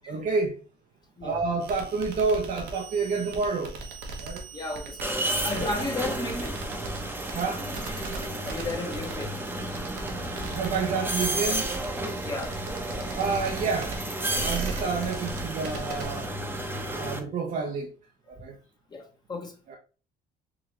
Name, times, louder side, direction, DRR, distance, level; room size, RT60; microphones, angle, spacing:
voice 1, 0.1-0.6 1.2-3.8 4.2-4.5 5.6-5.7 7.3-7.6 10.5-11.7 13.1-13.9 14.4-16.3 17.0-17.9 18.3-18.6 19.7-19.8, right 4 dB, 50° right, 0.7 m, -29 dB
sound 1, 1.6-16.3, right 3 dB, 80° right, 1.2 m, -39 dB
voice 2, 4.5-5.1 5.4-6.6 8.5-9.4 12.2-12.6 18.4-18.5 18.9-19.5, left 2 dB, 25° left, 1.1 m, -34 dB
sound 2, 5.0-17.2, right 1 dB, 10° right, 0.8 m, -32 dB
4.9 x 2.9 x 2.9 m
cardioid pair, 110°, 17 cm